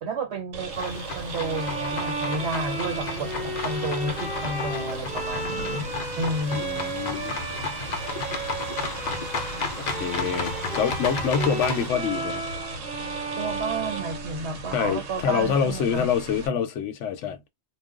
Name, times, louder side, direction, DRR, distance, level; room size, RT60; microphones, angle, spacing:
voice 1, 0.0-5.9 6.2-6.8 13.4-16.1, right 2 dB, 60° right, 1.2 m, -31 dB
sound 1, 0.5-16.5, right 3 dB, 75° right, 1.0 m, -37 dB
sound 2, 0.7-11.9, left 4 dB, 55° left, 0.5 m, -33 dB
Bowed string instrument, 1.4-14.9, right 2 dB, 5° right, 0.7 m, -34 dB
voice 2, 6.5-7.3 10.0-12.4 14.7-17.4, left 7 dB, 75° left, 0.9 m, -26 dB
2.4 x 2.2 x 3.6 m
omnidirectional pair, 1.3 m